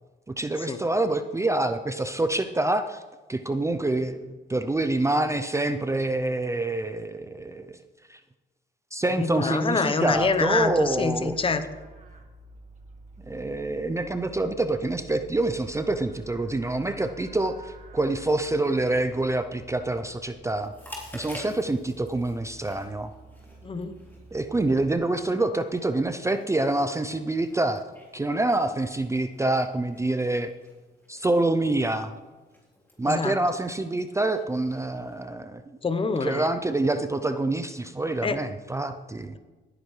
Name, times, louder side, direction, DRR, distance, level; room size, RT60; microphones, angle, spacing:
voice 1, 0.3-3.0 3.3-7.8 8.1-8.2 8.9-11.4 13.3-20.7 21.1-23.1 24.3-27.8 28.1-30.5 31.1-32.1 33.0-35.8 36.2-39.4, right 2 dB, 15° right, 9 dB, 0.5 m, -26 dB
voice 2, 9.2-11.6 23.6-23.9 33.0-33.3 35.8-36.5 38.2-38.4, left 4 dB, 25° left, 9 dB, 0.9 m, -26 dB
Livestock farm animals working animals, 10.0-24.9, right 2 dB, 40° right, 1.8 m, -49 dB
Chewing mastication, 20.6-35.2, left 1 dB, 10° left, 3.9 m, -50 dB
16.5 x 9.9 x 3.3 m, 1.2 s
cardioid pair, 90°, 20 cm